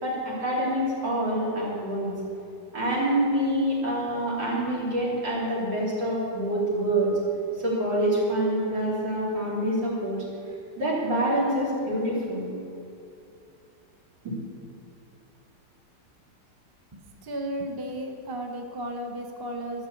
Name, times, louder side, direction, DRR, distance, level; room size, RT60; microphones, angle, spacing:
voice 1, 0.0-2.1 2.7-7.1 7.6-10.2 10.8-12.5 14.2-14.3, right 1 dB, 90° right, -6 dB, 3.8 m, -26 dB
voice 2, 16.9-19.9, right 1 dB, 20° right, 3 dB, 0.7 m, -34 dB
13.0 x 6.5 x 7.8 m, 2.6 s
omnidirectional pair, 1.9 m